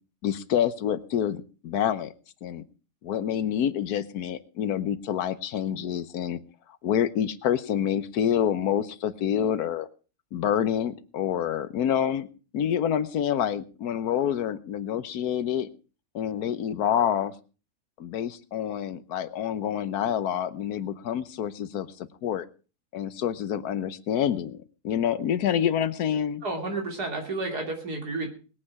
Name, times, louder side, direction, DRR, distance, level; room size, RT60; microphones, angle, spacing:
voice 1, 0.2-2.1 2.4-2.6 3.0-6.4 6.8-9.9 10.3-12.3 12.5-15.7 16.1-17.3 18.0-22.4 22.9-26.4, left 9 dB, 80° left, 14 dB, 1.4 m, -27 dB
voice 2, 26.4-28.3, right 2 dB, 85° right, 1 dB, 3.5 m, -31 dB
20.5 x 8.8 x 4.8 m, 0.35 s
omnidirectional pair, 1.6 m